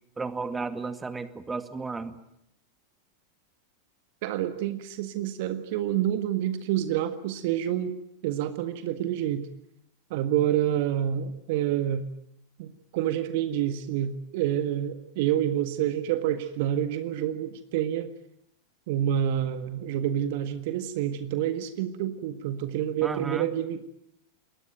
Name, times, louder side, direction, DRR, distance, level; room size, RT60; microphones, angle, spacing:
voice 1, 0.2-2.2 23.0-23.5, right 3 dB, 15° right, 11 dB, 2.1 m, -33 dB
voice 2, 4.2-7.9 8.2-9.5 10.1-12.1 12.6-18.1 18.9-23.9, right 11 dB, 55° right, 10 dB, 1.6 m, -28 dB
27.5 x 21.5 x 9.2 m, 0.74 s
figure-of-eight pair, 90°, 0 cm